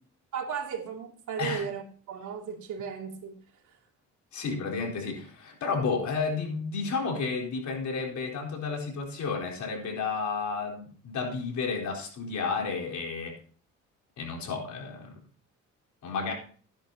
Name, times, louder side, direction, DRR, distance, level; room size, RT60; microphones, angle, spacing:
voice 1, 0.3-3.4 3.6-3.8, right 7 dB, 75° right, 3.2 m, -36 dB
voice 2, 4.3-13.4 14.2-15.2 16.0-16.3, left 4 dB, 70° left, 4.2 m, -32 dB
16.5 x 10.5 x 3.0 m
cardioid pair, 90°, 30 cm